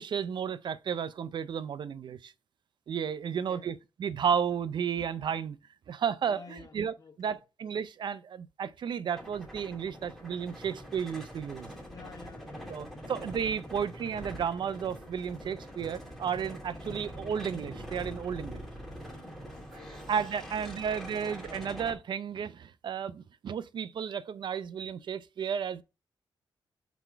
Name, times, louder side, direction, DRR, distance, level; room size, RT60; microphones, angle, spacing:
voice 1, 0.0-2.3 2.9-5.6 5.9-11.7 12.7-18.6 20.1-25.8, right 7 dB, 65° right, 0.5 m, -33 dB
voice 2, 3.3-3.7 6.3-7.4 11.9-13.1 13.6-13.7 16.8-17.1 19.5-20.1 20.6-20.7, left 5 dB, 45° left, 1.1 m, -52 dB
sound 1, 9.1-22.0, equal, ahead, 2.6 m, -44 dB
4.5 x 4.1 x 5.5 m
cardioid pair, 85°, 9 cm